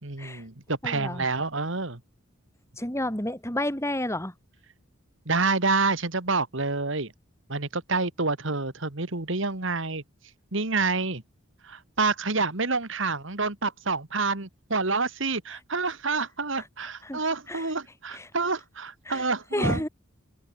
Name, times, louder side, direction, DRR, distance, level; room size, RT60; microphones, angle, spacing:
voice 1, 0.0-2.0 5.3-7.1 7.5-10.0 10.5-11.2 11.6-19.8, right 3 dB, 60° right, 2.1 m, -28 dB
voice 2, 0.8-1.2 2.8-4.3 16.6-17.2 17.5-17.7 18.1-18.3 19.1-19.2 19.5-19.9, left 1 dB, 15° left, 4.5 m, -30 dB
open air
head